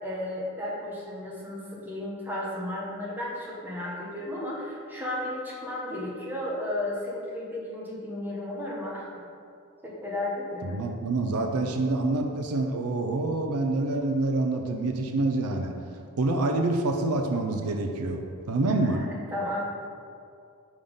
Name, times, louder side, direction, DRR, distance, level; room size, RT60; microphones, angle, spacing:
voice 1, 0.0-9.1 9.8-10.8 18.8-19.7, left 1 dB, 10° right, -5 dB, 1.1 m, -34 dB
voice 2, 10.6-15.7 16.2-18.2 18.5-19.0, right 2 dB, 80° right, 3 dB, 0.5 m, -26 dB
5.4 x 3.7 x 5.2 m, 2.4 s
head